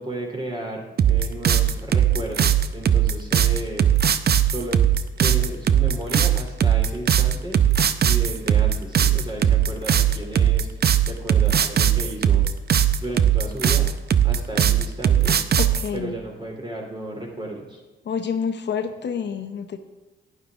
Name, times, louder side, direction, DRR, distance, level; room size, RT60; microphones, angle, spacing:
voice 1, 0.0-3.9 4.4-4.8 5.2-7.6 8.0-12.4 13.0-13.9 14.2-15.4 15.9-17.8, right 1 dB, 20° right, 0 dB, 3.1 m, -33 dB
sound 1, 1.0-15.9, right 9 dB, 50° right, 0.6 m, -19 dB
voice 2, 15.6-16.1 18.1-19.8, left 6 dB, 55° left, 7 dB, 0.8 m, -28 dB
11.5 x 9.7 x 3.6 m, 1.2 s
cardioid pair, 75°, 21 cm